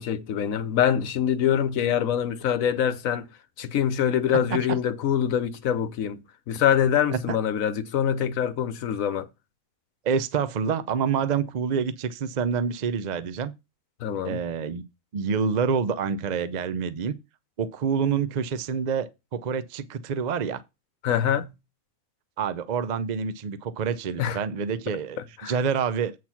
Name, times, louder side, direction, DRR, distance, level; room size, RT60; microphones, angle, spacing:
voice 1, 0.0-3.3 3.6-9.3 14.0-14.4 21.0-21.5 24.2-24.4 25.4-25.5, left 9 dB, 70° left, 1.2 m, -24 dB
voice 2, 10.0-13.5 14.2-14.8 15.1-17.1 17.6-20.6 22.4-26.2, right 6 dB, 55° right, 0.4 m, -27 dB
8.3 x 4.4 x 5.7 m
omnidirectional pair, 1.5 m